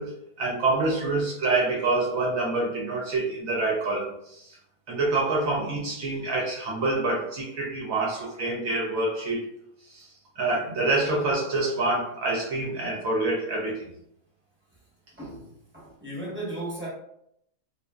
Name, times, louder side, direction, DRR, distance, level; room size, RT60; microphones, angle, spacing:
voice 1, 0.0-4.6 4.9-9.5 9.9-10.1 10.4-13.9, right 2 dB, 65° right, -2 dB, 0.9 m, -26 dB
voice 2, 15.2-16.9, right 1 dB, 10° right, -7 dB, 0.7 m, -36 dB
2.6 x 2.4 x 2.2 m, 0.75 s
omnidirectional pair, 1.7 m